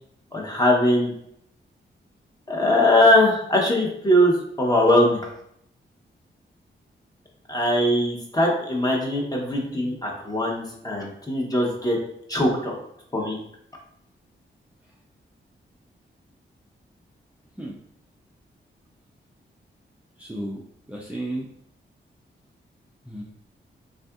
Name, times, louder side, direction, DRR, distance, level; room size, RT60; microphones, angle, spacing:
voice 1, 0.3-1.1 2.5-5.3 7.5-12.0 12.3-12.7 13.1-13.4, left 1 dB, 20° left, -1 dB, 0.9 m, -21 dB
voice 2, 9.6-10.0 17.6-17.8 20.2-21.5 23.1-23.2, right 1 dB, 5° right, -4 dB, 0.5 m, -34 dB
3.4 x 2.5 x 2.3 m, 0.72 s
cardioid pair, 55°, 21 cm